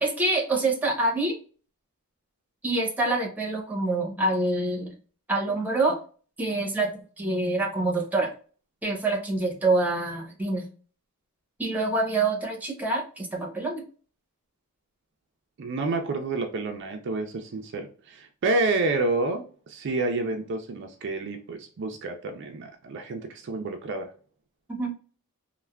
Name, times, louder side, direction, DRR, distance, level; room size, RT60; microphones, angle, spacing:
voice 1, 0.0-1.4 2.6-4.9 5.3-6.0 6.4-8.3 8.8-10.7 11.6-13.8 24.7-24.9, right 2 dB, 5° right, -1 dB, 0.7 m, -26 dB
voice 2, 15.6-24.1, right 3 dB, 50° right, 4 dB, 0.4 m, -29 dB
3.2 x 2.1 x 2.2 m, 0.40 s
head